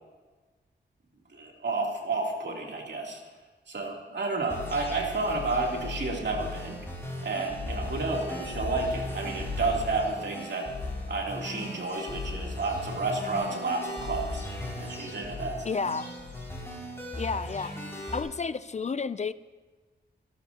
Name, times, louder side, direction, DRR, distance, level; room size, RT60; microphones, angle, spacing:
voice 1, 1.3-3.2 3.7-6.8 7.2-10.7 11.1-14.5 14.8-15.8, right 3 dB, 70° right, -1 dB, 3.1 m, -31 dB
sound 1, 4.5-18.2, left 1 dB, 15° left, 5.4 m, -37 dB
voice 2, 15.7-16.1 17.2-17.7 18.1-19.3, left 5 dB, 40° left, 15 dB, 0.4 m, -31 dB
29.0 x 12.5 x 2.9 m, 1.3 s
wide cardioid pair, 105°, 19 cm